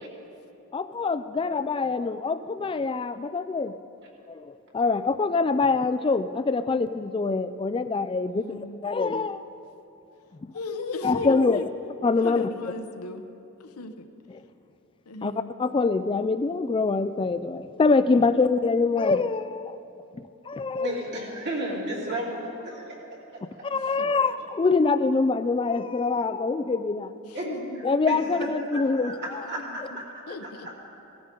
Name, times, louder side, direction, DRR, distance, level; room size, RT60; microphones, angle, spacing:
voice 1, 0.7-3.7 4.3-9.4 11.0-11.6 12.0-12.5 14.3-14.4 15.2-15.3 15.6-19.8 20.1-20.9 23.6-27.1 27.8-29.2, left 4 dB, 25° left, 12 dB, 0.3 m, -25 dB
voice 2, 8.3-8.8 10.5-11.7 12.2-13.2 13.6-14.0 15.1-15.5 18.3-18.5 24.0-24.1 27.2-27.8 29.7-30.0 30.3-30.7, left 2 dB, 90° left, 7 dB, 0.9 m, -36 dB
voice 3, 20.7-23.0 23.3-23.4 24.1-24.2 27.3-30.7, right 1 dB, 50° right, -4 dB, 3.0 m, -34 dB
18.0 x 14.5 x 3.8 m, 2.7 s
head